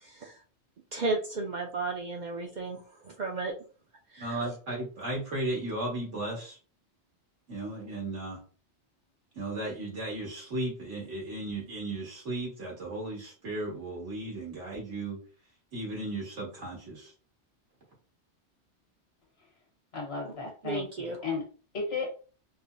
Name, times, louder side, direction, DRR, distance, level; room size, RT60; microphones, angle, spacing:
voice 1, 0.0-0.4 0.9-3.5 4.1-4.4 20.2-20.3 20.6-21.2, right 3 dB, 55° right, 1 dB, 0.6 m, -34 dB
voice 2, 4.2-6.6 7.5-8.4 9.4-15.2 15.7-17.1, right 2 dB, 90° right, -3 dB, 1.9 m, -35 dB
voice 3, 19.9-21.4 21.7-22.1, left 4 dB, 60° left, 0 dB, 1.4 m, -34 dB
5.2 x 2.0 x 2.5 m, 0.38 s
omnidirectional pair, 1.2 m